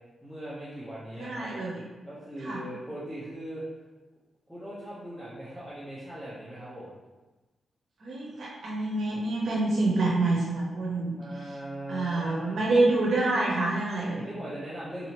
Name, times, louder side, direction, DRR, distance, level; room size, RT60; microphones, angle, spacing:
voice 1, 0.2-1.5 2.0-3.6 4.5-6.9 11.2-12.6 14.2-15.1, right 1 dB, 5° left, -10 dB, 1.0 m, -39 dB
voice 2, 1.1-1.8 2.4-2.6 8.0-11.1 11.9-14.3, right 2 dB, 70° right, -5 dB, 0.8 m, -27 dB
4.6 x 2.7 x 3.0 m, 1.2 s
cardioid pair, 70°, 0 cm